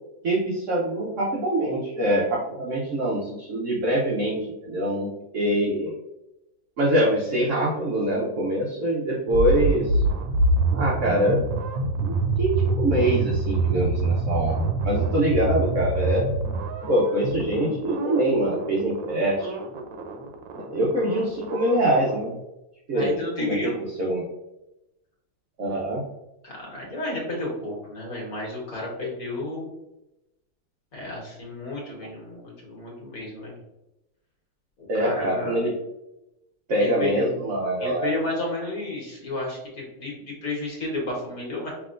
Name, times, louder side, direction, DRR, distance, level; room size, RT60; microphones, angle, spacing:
voice 1, 0.2-5.9 6.8-10.0 10.7-11.5 12.0-16.3 16.8-19.6 20.5-22.4 22.9-23.7 24.0-24.3 25.6-26.0 29.0-29.1 34.9-35.7 36.7-38.1, right 1 dB, 55° right, -4 dB, 0.8 m, -24 dB
sound 1, 9.3-22.2, right 3 dB, 80° right, 1.4 m, -26 dB
voice 2, 22.9-23.8 26.4-29.7 30.9-33.6 35.0-35.6 36.8-37.3 37.8-41.7, left 2 dB, 50° left, -3 dB, 1.6 m, -32 dB
5.8 x 3.0 x 2.5 m, 0.93 s
omnidirectional pair, 2.1 m